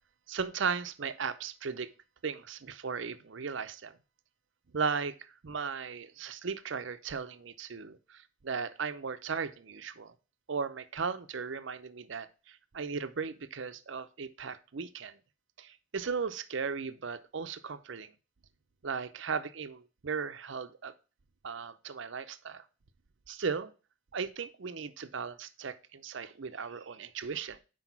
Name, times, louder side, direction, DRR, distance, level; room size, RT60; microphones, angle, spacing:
voice 1, 0.3-1.9 2.2-4.0 4.7-10.1 10.5-15.2 15.6-18.1 18.8-20.9 21.4-22.6 23.3-23.7 24.1-27.6, right 5 dB, 60° right, 0.6 m, -36 dB
6.0 x 4.8 x 5.8 m
head